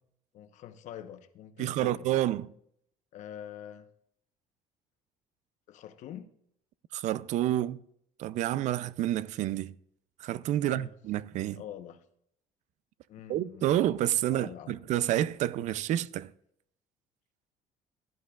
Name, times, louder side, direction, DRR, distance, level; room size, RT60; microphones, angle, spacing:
voice 1, 0.3-2.1 3.1-3.9 5.7-6.3 10.6-10.9 11.5-12.0 13.1-13.7 14.2-14.8, left 10 dB, 65° left, 1.1 m, -45 dB
voice 2, 1.6-2.5 6.9-7.8 8.2-9.7 10.2-11.6 13.3-16.3, right 13 dB, 65° right, 0.5 m, -29 dB
16.5 x 12.0 x 2.4 m
cardioid pair, 135°, 13 cm